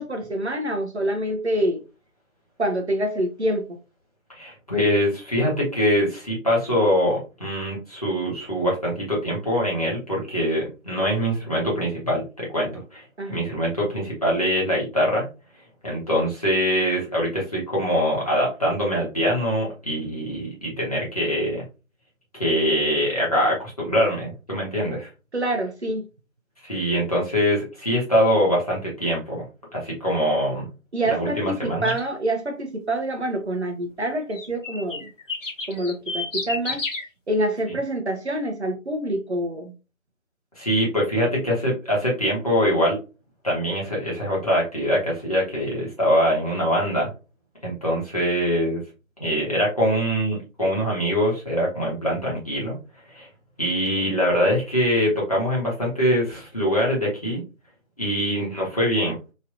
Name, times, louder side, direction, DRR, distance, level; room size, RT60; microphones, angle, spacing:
voice 1, 0.0-1.8 2.6-3.8 13.2-13.5 25.3-26.0 30.9-35.1 35.7-36.8 37.3-39.7, right 1 dB, 55° right, 0.7 m, -26 dB
voice 2, 4.3-13.0 13.3-15.3 15.8-21.7 22.3-25.1 26.6-29.4 29.7-30.7 31.0-31.9 40.6-43.0 43.4-47.1 47.6-48.8 49.2-52.8 53.1-53.3 53.6-57.4 58.0-59.2, equal, 30° left, 1.0 m, -23 dB
sound 1, 31.8-32.1 34.3-37.0, left 3 dB, 65° left, 1.0 m, -30 dB
3.1 x 2.6 x 2.5 m
figure-of-eight pair, 165°, 40 cm